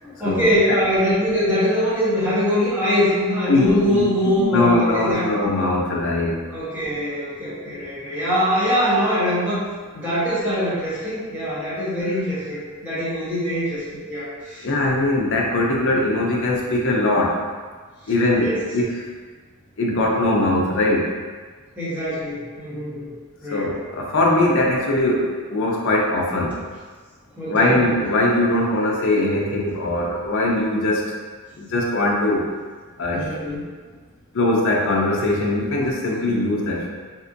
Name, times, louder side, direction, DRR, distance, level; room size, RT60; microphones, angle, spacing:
voice 1, 0.0-5.3 6.5-9.6 9.9-14.7 18.4-18.6 21.8-23.1 23.4-23.7 27.3-27.8 33.1-33.7, equal, 10° right, -12 dB, 1.3 m, -23 dB
voice 2, 3.5-4.0 4.4-6.4 14.6-17.4 18.1-18.9 19.8-21.1 23.5-26.5 27.5-31.1 31.6-32.5 33.0-33.3 34.3-36.9, left 2 dB, 60° left, -2 dB, 0.6 m, -21 dB
3.3 x 2.7 x 2.5 m, 1.5 s
head